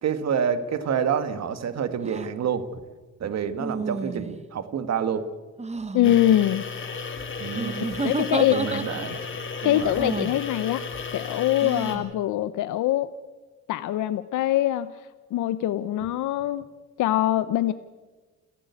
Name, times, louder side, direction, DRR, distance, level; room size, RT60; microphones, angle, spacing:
voice 1, 0.0-2.7 3.2-5.3 7.4-7.8 8.5-9.2 9.6-10.0, right 7 dB, 60° right, 10 dB, 1.8 m, -28 dB
sound 1, 2.0-2.3 3.6-4.5 5.6-6.2 7.5-9.3 10.0-10.4 11.6-12.1, right 4 dB, 20° right, 1.1 m, -31 dB
voice 2, 5.9-6.6 8.0-8.6 9.6-10.8 11.1-13.1 13.7-14.9 15.3-16.6 17.0-17.7, left 13 dB, 80° left, 13 dB, 0.8 m, -23 dB
sound 2, 6.0-12.0, left 5 dB, 40° left, 3.5 m, -34 dB
29.5 x 11.0 x 8.4 m, 1.3 s
cardioid pair, 90°, 30 cm